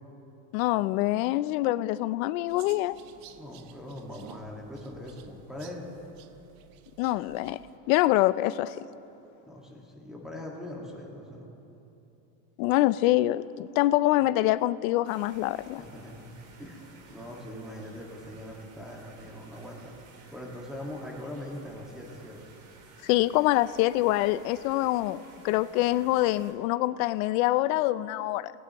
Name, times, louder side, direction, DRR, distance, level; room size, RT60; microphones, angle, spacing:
voice 1, 0.5-3.0 7.0-7.6 7.9-8.9 12.6-15.8 23.0-28.5, left 16 dB, 80° left, 17 dB, 0.5 m, -25 dB
sound 1, 2.5-7.8, right 10 dB, 80° right, 0.9 m, -53 dB
voice 2, 3.3-5.9 9.4-11.5 15.8-16.3 16.6-16.8 17.1-19.9 20.3-22.4, left 1 dB, ahead, -4 dB, 1.7 m, -41 dB
sound 2, 15.0-26.5, right 4 dB, 45° right, 2.7 m, -54 dB
18.5 x 17.5 x 3.0 m, 3.0 s
cardioid pair, 145°, 41 cm